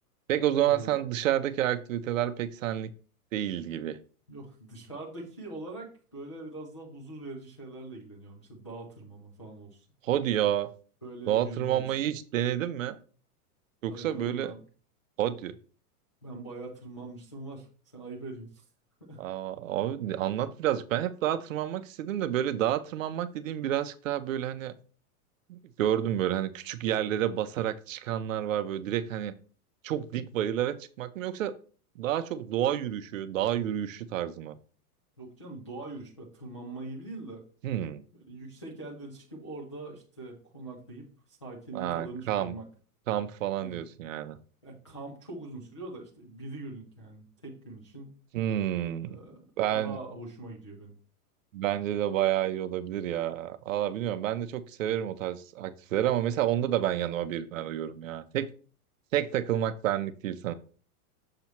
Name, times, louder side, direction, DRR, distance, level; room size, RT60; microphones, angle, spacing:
voice 1, 0.3-2.9 3.3-4.0 10.0-10.7 11.3-13.0 13.8-14.5 15.2-15.5 19.2-24.8 25.5-29.3 29.8-31.5 32.0-34.6 37.6-38.0 41.7-42.5 43.1-44.4 48.3-49.2 49.6-50.0 51.5-58.5 59.1-60.5, right 11 dB, 60° right, 12 dB, 0.6 m, -29 dB
voice 2, 4.3-9.8 11.0-11.8 13.9-14.6 16.2-17.7 17.9-18.6 19.0-19.2 35.2-37.4 38.3-42.6 43.6-43.8 44.6-48.2 49.1-51.0, right 2 dB, 20° left, -5 dB, 0.3 m, -42 dB
6.7 x 3.0 x 5.8 m, 0.39 s
supercardioid pair, 175°, 46 cm